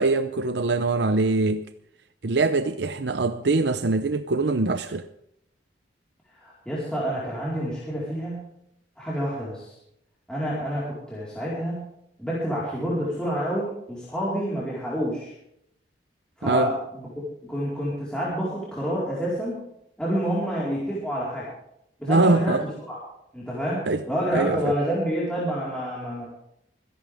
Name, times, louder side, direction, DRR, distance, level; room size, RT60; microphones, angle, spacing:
voice 1, 0.0-1.6 2.2-5.1 16.4-16.7 22.1-22.6 23.9-24.0 24.3-24.7, right 3 dB, 70° right, 0.7 m, -23 dB
voice 2, 6.3-8.5 9.0-9.7 10.3-11.9 12.2-15.3 16.4-17.1 17.5-19.6 20.0-21.5 22.0-22.6 22.9-23.0 23.3-26.3, equal, 5° left, 4.5 m, -28 dB
25.0 x 11.0 x 3.6 m
head